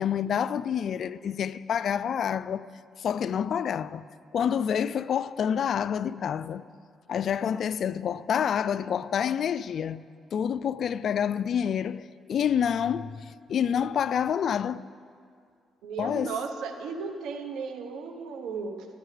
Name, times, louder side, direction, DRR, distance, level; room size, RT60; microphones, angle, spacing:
voice 1, 0.0-2.7 3.0-4.0 4.3-6.6 7.1-14.8 16.0-16.3, left 8 dB, 60° left, 0.3 m, -28 dB
voice 2, 15.8-18.9, right 5 dB, 85° right, 1.0 m, -35 dB
21.0 x 9.9 x 3.3 m
cardioid pair, 90°, 0 cm